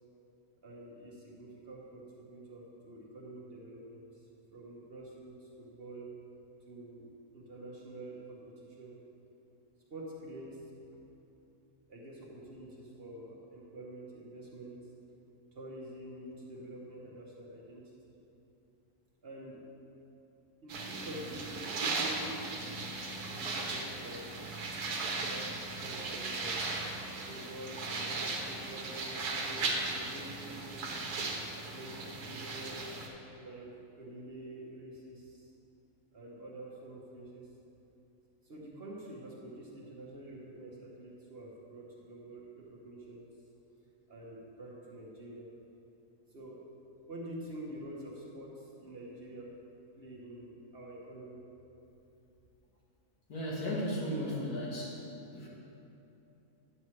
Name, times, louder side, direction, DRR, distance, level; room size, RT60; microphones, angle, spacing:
voice 1, 0.6-4.3 4.5-6.1 6.7-9.0 9.9-10.6 11.9-14.8 15.5-17.9 19.2-19.6 20.6-22.5 23.3-24.4 25.1-26.5 27.3-31.0 31.6-32.9 33.4-35.5 36.1-37.5 38.4-43.3 44.1-45.5 46.3-46.6 47.1-49.5 50.0-51.4, right 1 dB, 45° right, -4 dB, 1.2 m, -47 dB
sound 1, 20.7-33.1, right 3 dB, 80° right, 1.4 m, -37 dB
voice 2, 53.3-55.0 55.3-55.5, equal, 85° left, -5 dB, 2.0 m, -35 dB
9.8 x 7.1 x 3.2 m, 2.9 s
omnidirectional pair, 1.6 m